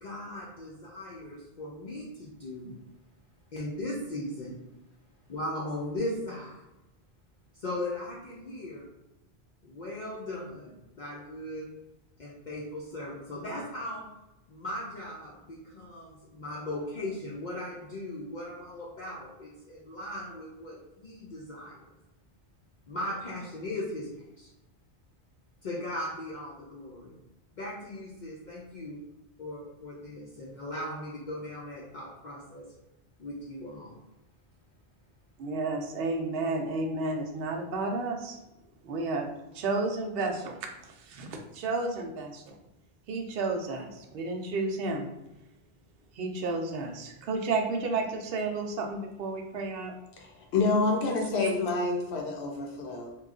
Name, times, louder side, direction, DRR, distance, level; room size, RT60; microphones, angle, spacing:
voice 1, 0.0-2.8 3.5-4.6 5.3-6.6 7.5-8.8 9.6-11.7 12.2-14.0 14.5-21.9 22.9-24.5 25.6-27.1 27.5-29.0 29.4-32.7 33.2-34.0, left 1 dB, 55° left, -4 dB, 0.6 m, -38 dB
voice 2, 35.4-38.4 38.8-40.6 40.9-41.3 41.5-42.6 43.1-45.1 46.1-49.9 51.4-51.5, right 3 dB, 65° right, 2 dB, 0.8 m, -32 dB
voice 3, 50.2-53.2, left 3 dB, 80° left, 1 dB, 0.9 m, -28 dB
3.0 x 2.3 x 3.6 m, 0.93 s
omnidirectional pair, 1.1 m